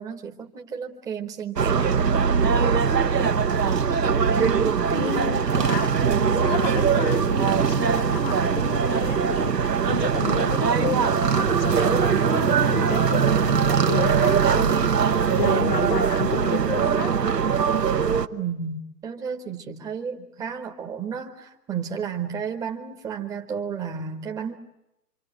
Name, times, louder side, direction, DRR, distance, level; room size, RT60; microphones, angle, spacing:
voice 1, 0.0-2.1 18.3-24.6, right 6 dB, 5° right, 3 dB, 0.9 m, -32 dB
sound 1, 1.6-18.3, right 6 dB, 85° right, 1.2 m, -21 dB
voice 2, 4.9-17.1, left 9 dB, 30° left, 14 dB, 1.1 m, -32 dB
26.5 x 24.5 x 9.1 m, 0.87 s
figure-of-eight pair, 135°, 48 cm